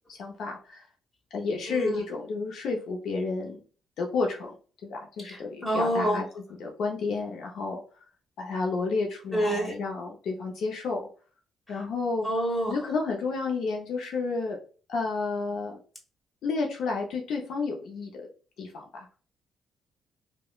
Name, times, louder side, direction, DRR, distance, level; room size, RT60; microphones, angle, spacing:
voice 1, 0.1-0.9 1.3-3.6 4.0-4.6 4.8-7.8 8.4-11.0 11.7-12.3 12.7-14.6 14.9-15.8 16.4-18.3 18.6-19.2, left 4 dB, 75° left, 1 dB, 0.4 m, -31 dB
voice 2, 1.7-2.0 5.2-6.2 9.3-9.7 12.2-12.7, right 1 dB, 20° left, 0 dB, 1.2 m, -27 dB
2.9 x 2.0 x 2.2 m, 0.39 s
cardioid pair, 90°, 0 cm